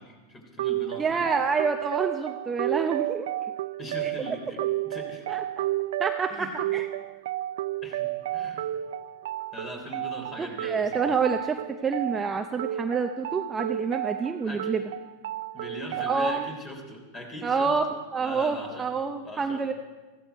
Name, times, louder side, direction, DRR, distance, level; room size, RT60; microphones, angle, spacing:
voice 1, 0.0-1.3 3.8-5.4 6.3-6.6 7.8-8.7 9.5-11.2 14.4-14.9 15.5-18.9 19.2-19.7, equal, 20° left, 3 dB, 3.4 m, -41 dB
sound 1, 0.6-16.6, right 13 dB, 75° right, 0.4 m, -32 dB
voice 2, 1.0-3.3 4.0-4.1 5.3-5.7 6.0-6.9 10.4-11.5 11.8-14.8 16.0-16.5 17.4-17.8 18.1-19.7, right 5 dB, 15° right, 5 dB, 0.6 m, -28 dB
15.5 x 14.5 x 4.6 m, 1.2 s
supercardioid pair, 135°, 0 cm